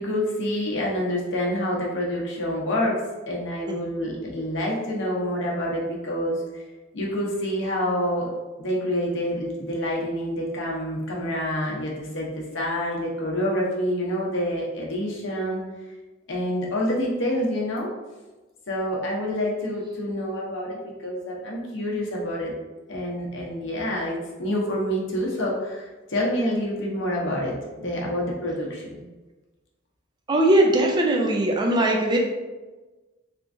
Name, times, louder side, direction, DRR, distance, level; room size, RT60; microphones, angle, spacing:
voice 1, 0.0-3.0 3.3-6.4 6.9-8.3 8.6-15.6 16.3-17.9 18.7-22.5 22.9-27.5 27.8-29.0, equal, 65° left, -3 dB, 0.8 m, -27 dB
voice 2, 30.3-32.2, right 1 dB, 20° right, 0 dB, 0.4 m, -20 dB
3.4 x 2.9 x 2.6 m, 1.2 s
head